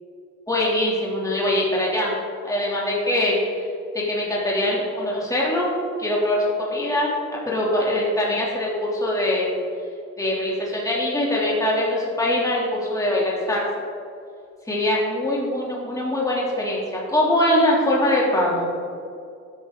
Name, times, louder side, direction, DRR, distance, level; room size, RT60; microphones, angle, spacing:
voice 1, 0.5-2.1 2.4-3.4 3.9-9.5 10.2-13.7 14.7-18.7, left 1 dB, 10° left, -5 dB, 2.7 m, -22 dB
12.5 x 9.2 x 3.8 m, 2.4 s
cardioid pair, 90°, 30 cm